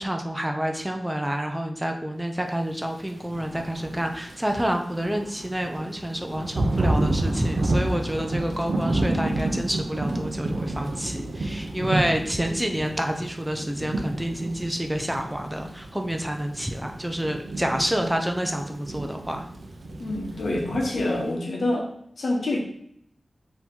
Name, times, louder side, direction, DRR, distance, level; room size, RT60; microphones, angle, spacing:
voice 1, 0.0-19.5, equal, 10° right, 4 dB, 0.5 m, -28 dB
Thunder / Rain, 3.2-21.3, right 2 dB, 85° right, 0.6 m, -30 dB
voice 2, 20.0-21.9 22.2-22.6, left 2 dB, 80° left, 0 dB, 1.0 m, -26 dB
4.2 x 2.9 x 3.6 m, 0.70 s
wide cardioid pair, 85°, 0 cm